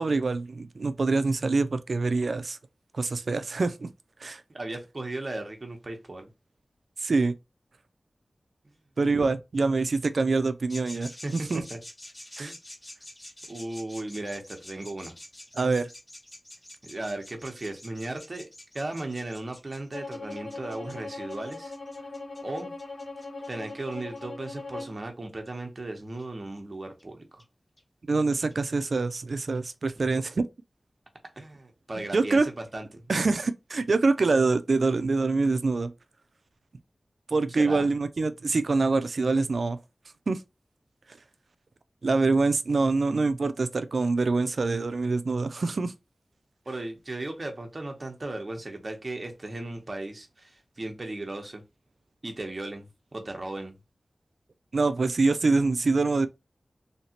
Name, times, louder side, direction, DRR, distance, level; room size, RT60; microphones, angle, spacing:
voice 1, 0.0-2.6 2.9-3.9 4.2-4.4 7.0-7.3 9.0-11.6 12.4-12.5 15.5-15.9 28.1-30.5 32.1-32.5 33.1-35.9 37.3-39.8 40.3-40.4 42.0-45.9 54.7-56.3, right 3 dB, 70° right, 0.4 m, -25 dB
voice 2, 4.5-6.3 11.2-11.8 12.4-12.6 13.5-15.1 16.8-18.5 18.7-21.7 22.4-22.7 23.5-27.4 30.0-30.1 31.4-33.0 37.5-37.9 46.7-51.6 52.2-53.8, right 2 dB, 40° right, 0.9 m, -36 dB
sound 1, 10.7-24.2 25.5-25.6 26.2-26.3 27.0-27.1 27.4-27.5 27.8-27.9 28.2-28.3 28.5-28.6 28.8-28.9 29.2-29.3 29.5-29.6 30.0-30.1, left 1 dB, 30° left, 0.7 m, -47 dB
Bowed string instrument, 19.9-25.0, left 3 dB, 80° left, 1.0 m, -39 dB
3.2 x 2.8 x 2.8 m
wide cardioid pair, 85°, 0 cm